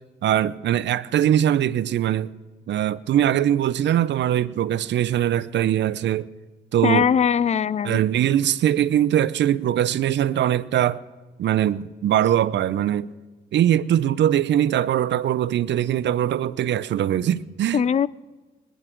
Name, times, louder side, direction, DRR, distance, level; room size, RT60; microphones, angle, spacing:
voice 1, 0.2-2.3 2.7-6.3 6.7-7.1 7.8-11.0 11.4-13.1 13.5-17.8, right 11 dB, 65° right, 0.6 m, -21 dB
voice 2, 6.8-8.0 17.7-18.1, left 7 dB, 35° left, 0.5 m, -20 dB
21.5 x 10.0 x 4.5 m
cardioid pair, 90°, 20 cm